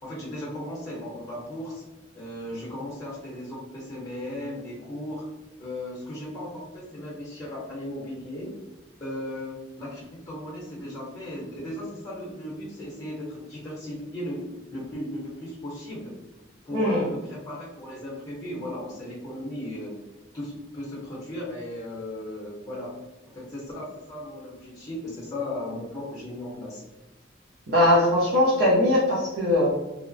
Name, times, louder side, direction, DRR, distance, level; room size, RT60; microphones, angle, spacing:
voice 1, 0.0-1.8 2.1-5.3 5.6-8.5 9.0-14.4 14.7-16.1 16.7-19.9 20.3-22.9 23.3-26.8, left 1 dB, 20° left, -6 dB, 0.7 m, -36 dB
voice 2, 16.7-17.0 27.7-29.7, left 1 dB, 60° right, -6 dB, 0.6 m, -20 dB
2.8 x 2.0 x 2.5 m, 1.1 s
head